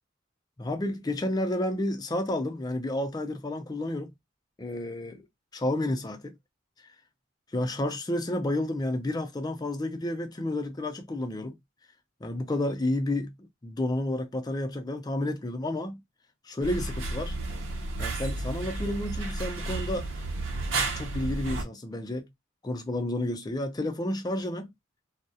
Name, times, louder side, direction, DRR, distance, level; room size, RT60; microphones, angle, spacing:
voice 1, 0.6-4.1 4.6-5.2 5.5-6.4 7.5-11.6 12.2-16.0 16.4-17.4 18.0-20.1 20.5-20.7 21.0-22.3 22.6-24.7, left 1 dB, 20° left, 0.4 m, -31 dB
sound 1, 16.6-21.6, right 2 dB, 85° right, 0.7 m, -32 dB
2.3 x 2.0 x 2.6 m
head